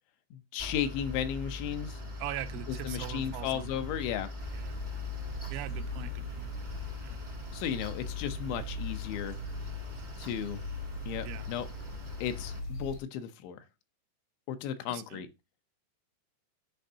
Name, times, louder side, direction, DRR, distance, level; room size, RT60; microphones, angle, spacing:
voice 1, 0.3-2.0 2.7-4.3 7.5-9.4 10.2-10.6 11.1-11.7 12.2-13.6 14.5-15.3, left 9 dB, 80° left, 3.1 m, -35 dB
Mechanical fan, 0.6-12.6, left 2 dB, 30° right, 0.7 m, -41 dB
voice 2, 2.2-3.8 4.5-4.8 5.5-6.5 7.0-7.2 11.2-11.5 14.9-15.2, right 13 dB, 85° right, 3.0 m, -41 dB
sound 1, 4.4-13.0, left 2 dB, 60° left, 1.4 m, -41 dB
10.0 x 5.2 x 2.7 m
omnidirectional pair, 5.4 m